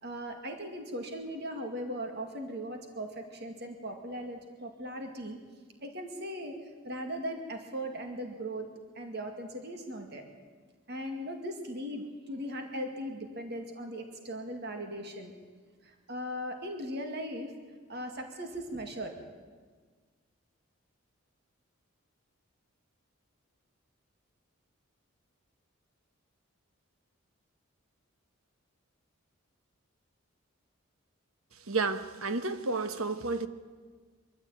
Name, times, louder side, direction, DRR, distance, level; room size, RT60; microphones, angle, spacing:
voice 1, 0.0-5.4 5.8-6.6 6.8-8.7 9.0-10.2 10.9-15.3 15.8-17.6 17.9-19.1, equal, 50° right, 2.2 m, -38 dB
voice 2, 31.7-33.5, right 3 dB, 80° right, 1.2 m, -31 dB
23.0 x 14.0 x 8.9 m
head